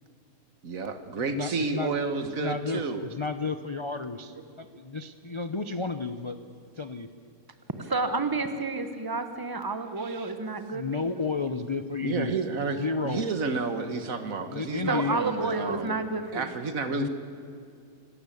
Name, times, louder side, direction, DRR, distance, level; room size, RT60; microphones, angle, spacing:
voice 1, 0.6-3.0 10.0-10.3 12.0-16.0 16.3-17.1, right 4 dB, 60° right, 9 dB, 1.7 m, -31 dB
voice 2, 1.3-1.9 2.4-6.4 6.8-7.1 10.7-12.3 12.8-13.2 14.5-15.2 16.9-17.1, left 4 dB, 45° left, 9 dB, 0.3 m, -32 dB
voice 3, 7.8-11.2 14.9-16.5, right 3 dB, 15° right, 8 dB, 1.1 m, -30 dB
26.5 x 13.0 x 8.6 m, 2.4 s
omnidirectional pair, 1.6 m